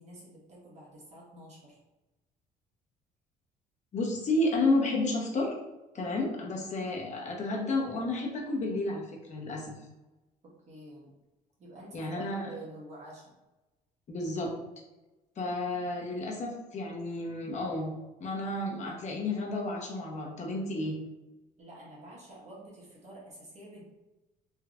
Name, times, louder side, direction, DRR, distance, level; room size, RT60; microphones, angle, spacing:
voice 1, 0.0-1.8 10.6-11.0 11.6-13.3 21.6-23.8, right 1 dB, 40° right, -5 dB, 1.4 m, -48 dB
voice 2, 3.9-5.5 5.9-9.7 11.9-12.5 14.1-14.5 15.4-17.9 18.2-21.0, left 2 dB, 45° left, -1 dB, 0.9 m, -31 dB
3.3 x 3.0 x 2.4 m, 1.0 s
cardioid pair, 110°, 17 cm